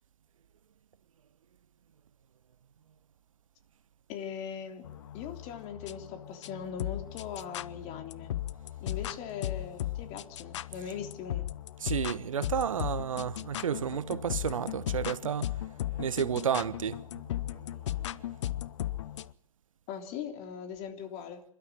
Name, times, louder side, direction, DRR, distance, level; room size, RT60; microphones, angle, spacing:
voice 1, 4.1-4.9 5.1-8.3 8.8-11.5 19.9-21.4, left 7 dB, 40° left, 3.5 m, -40 dB
Dark forest, 4.8-19.3, left 13 dB, 60° left, 0.8 m, -37 dB
voice 2, 11.8-18.2, right 8 dB, 70° right, 0.9 m, -32 dB
27.0 x 12.5 x 9.2 m
figure-of-eight pair, 105°, 18 cm